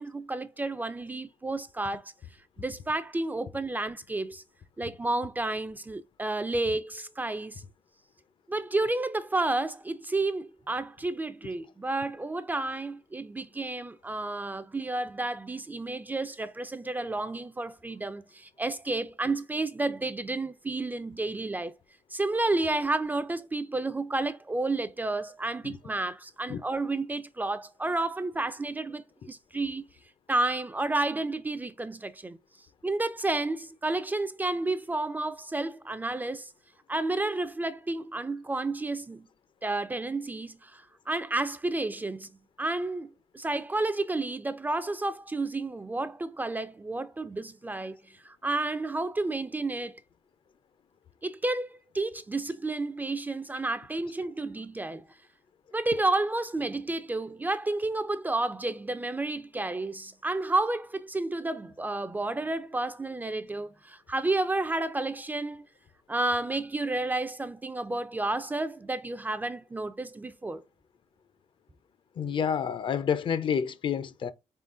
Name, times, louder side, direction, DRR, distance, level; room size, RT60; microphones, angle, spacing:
voice 1, 0.0-2.1 2.6-4.4 4.8-7.6 8.5-21.7 22.1-29.8 30.3-32.4 32.8-36.5 36.9-39.3 39.6-42.3 42.6-43.1 43.3-48.0 48.2-50.0 51.2-55.1 55.7-65.7 66.1-70.6, right 2 dB, 15° right, 0.3 m, -31 dB
voice 2, 72.2-74.3, left 7 dB, 45° left, 0.5 m, -28 dB
4.0 x 3.7 x 2.4 m
cardioid pair, 120°, 11 cm